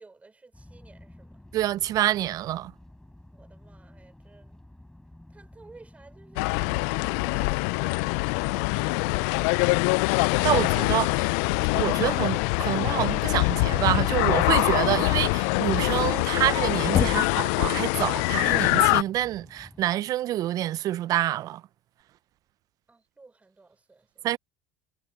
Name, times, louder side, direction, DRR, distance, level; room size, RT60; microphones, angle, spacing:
voice 1, 0.0-1.4 3.3-4.6 5.3-10.2 17.1-17.5 22.9-24.3, right 3 dB, 15° right, 4.8 m, -54 dB
sound 1, 0.5-19.9, left 1 dB, 5° left, 5.9 m, -51 dB
voice 2, 1.5-2.7 10.4-11.3 11.7-21.6 24.2-24.4, right 14 dB, 50° right, 0.7 m, -27 dB
sound 2, 6.4-19.0, left 30 dB, 65° left, 0.6 m, -24 dB
Knock, 16.9-17.9, left 12 dB, 45° left, 1.7 m, -27 dB
hypercardioid pair, 70°, 8 cm